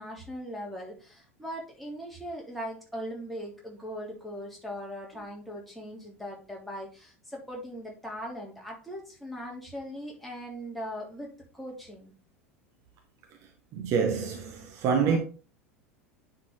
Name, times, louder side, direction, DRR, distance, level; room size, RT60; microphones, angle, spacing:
voice 1, 0.0-12.1, equal, ahead, 3.2 m, -40 dB
voice 2, 13.7-15.2, right 6 dB, 45° right, 1.3 m, -26 dB
9.8 x 4.6 x 3.8 m
figure-of-eight pair, 80°, 7 cm